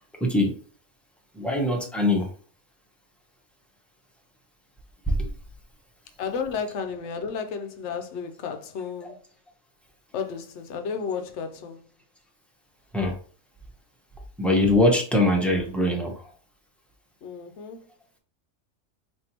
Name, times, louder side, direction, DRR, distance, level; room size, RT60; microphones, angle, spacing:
voice 1, 0.2-0.6 1.3-2.3 5.1-5.3 9.0-9.1 12.9-13.2 14.4-16.3, left 1 dB, ahead, 0.7 m, -22 dB
voice 2, 6.2-9.1 10.1-11.8 17.2-17.9, left 6 dB, 65° left, 0.9 m, -32 dB
5.3 x 2.7 x 2.9 m
omnidirectional pair, 1.4 m